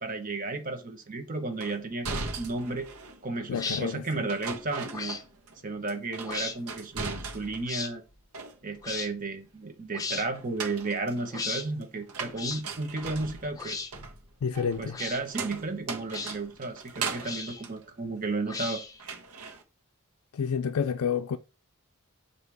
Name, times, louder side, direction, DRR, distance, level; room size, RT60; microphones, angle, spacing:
voice 1, 0.0-2.9 3.2-5.2 5.6-8.0 8.6-13.8 14.8-18.8, right 3 dB, 40° right, 1.0 m, -33 dB
sound 1, 1.6-3.2 4.3-5.6 5.9-7.7 8.1-8.9 10.3-18.6 19.0-19.6, right 4 dB, 90° right, 1.2 m, -39 dB
voice 2, 3.5-4.2 14.4-15.0 20.3-21.4, left 6 dB, 80° left, 0.4 m, -29 dB
sound 2, 3.5-3.8 4.9-5.2 6.2-6.6 7.7-7.9 8.8-9.1 9.9-10.3 11.3-11.6 12.4-12.6 13.6-13.9 14.9-15.2 16.1-16.3 17.2-17.6 18.5-19.0, left 4 dB, 15° left, 0.7 m, -35 dB
7.9 x 2.9 x 6.1 m
head